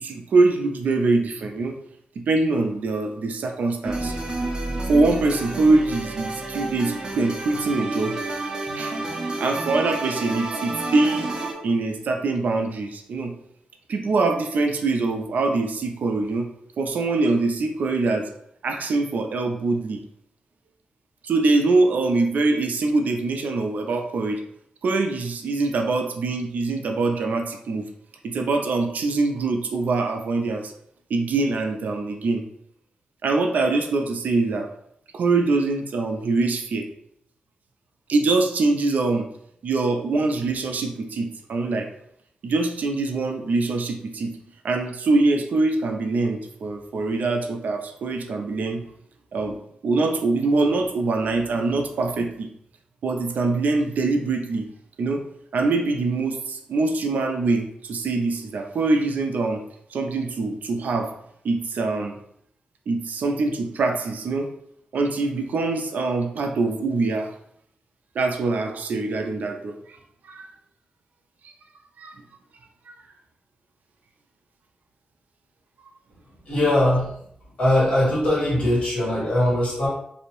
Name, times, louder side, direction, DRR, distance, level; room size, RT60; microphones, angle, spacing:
voice 1, 0.0-1.8 2.3-4.2 4.7-8.2 8.7-8.9 9.2-11.3 11.6-13.3 13.9-16.5 16.8-18.3 18.6-20.0 21.2-24.4 24.8-27.9 28.2-30.7 31.1-32.4 33.2-34.7 35.1-36.9 38.1-39.3 39.6-41.9 42.4-44.3 44.6-48.8 49.3-49.6 49.8-52.5 53.0-54.7 55.0-55.2 55.5-59.6 59.9-61.1 61.4-62.2 62.9-64.5 64.9-67.3 68.2-69.8 70.2-70.5 72.0-72.2 72.9-73.0, right 3 dB, 75° right, 4 dB, 0.4 m, -23 dB
sound 1, 3.8-11.5, right 2 dB, 30° right, 0.6 m, -30 dB
voice 2, 76.4-77.1 77.6-79.9, left 1 dB, 45° left, -6 dB, 1.4 m, -21 dB
2.6 x 2.0 x 2.9 m, 0.71 s
wide cardioid pair, 100°, 3 cm